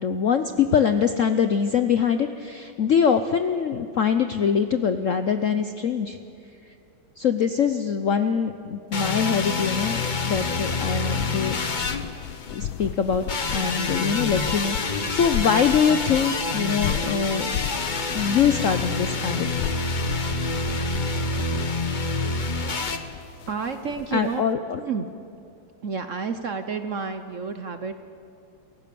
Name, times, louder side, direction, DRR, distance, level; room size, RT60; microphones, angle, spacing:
voice 1, 0.0-6.2 7.2-11.6 12.5-13.2 13.5-17.5 18.1-19.5 24.1-24.8, left 7 dB, 65° left, 9 dB, 0.8 m, -23 dB
sound 1, 8.9-12.6 13.3-23.0, left 3 dB, 35° left, 0.8 m, -27 dB
sound 2, 10.2-24.4, left 11 dB, 85° left, 1.4 m, -36 dB
voice 2, 23.5-24.4 24.7-25.1 25.8-27.9, right 5 dB, 55° right, 8 dB, 0.9 m, -30 dB
28.5 x 15.5 x 6.9 m, 2.7 s
omnidirectional pair, 2.2 m